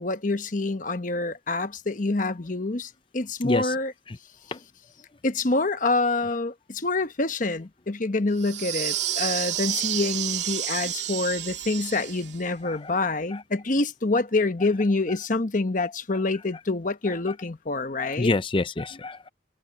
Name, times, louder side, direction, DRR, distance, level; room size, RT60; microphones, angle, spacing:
voice 1, 0.0-3.9 5.2-18.3, left 3 dB, 45° left, 1.1 m, -26 dB
voice 2, 3.4-3.7 4.1-4.2 4.5-4.6 12.6-12.9 13.3-13.4 18.0-19.3, left 2 dB, 25° left, 0.6 m, -27 dB
sound 1, 8.4-12.4, right 12 dB, 65° right, 2.9 m, -30 dB
head